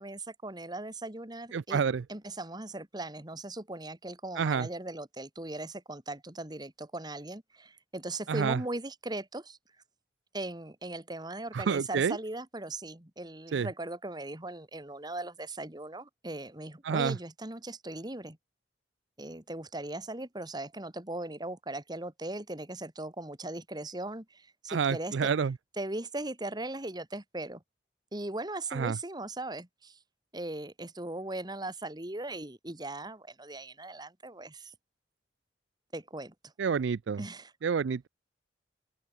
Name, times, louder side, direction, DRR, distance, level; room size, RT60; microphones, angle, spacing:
voice 1, 0.0-1.8 2.1-9.6 10.3-18.4 19.2-25.3 25.8-27.6 28.1-30.0 30.3-34.7 35.9-36.5 37.2-37.5, right 2 dB, 20° right, 2.0 m, -39 dB
voice 2, 1.5-2.0 4.4-4.7 8.3-8.6 11.5-12.2 13.5-13.7 16.8-17.2 24.7-25.5 28.7-29.0 36.6-37.2 37.6-38.1, right 6 dB, 75° right, 0.4 m, -28 dB
open air
head